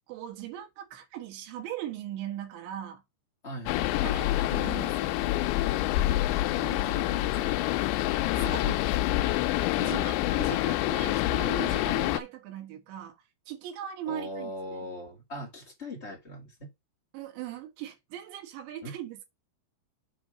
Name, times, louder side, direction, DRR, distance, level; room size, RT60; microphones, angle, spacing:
voice 1, 0.1-3.0 4.0-5.2 6.6-7.6 8.4-8.8 9.8-13.2 13.5-14.8 17.1-19.3, right 11 dB, 85° right, 3.6 m, -39 dB
voice 2, 3.4-4.2 14.0-16.7 18.8-18.9, equal, 35° left, 1.0 m, -40 dB
sound 1, 3.7-12.2, left 16 dB, 85° left, 2.9 m, -27 dB
7.8 x 3.9 x 4.9 m
omnidirectional pair, 5.0 m